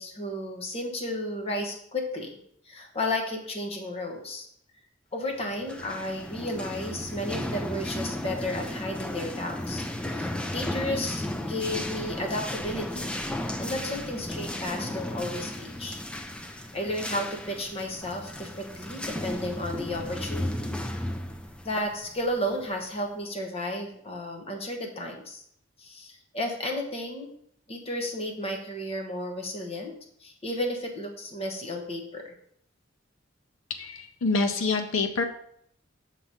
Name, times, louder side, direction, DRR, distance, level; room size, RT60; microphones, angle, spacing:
voice 1, 0.0-2.4 2.7-4.5 5.1-13.2 13.6-16.0 16.5-20.7 21.6-25.4 25.8-27.3 27.7-29.9 30.2-32.3, left 1 dB, 30° left, 2 dB, 1.1 m, -33 dB
sound 1, 5.5-22.9, left 1 dB, 5° left, 0.4 m, -34 dB
voice 2, 33.7-35.2, left 3 dB, 85° left, 5 dB, 0.6 m, -26 dB
6.6 x 3.1 x 5.5 m, 0.69 s
head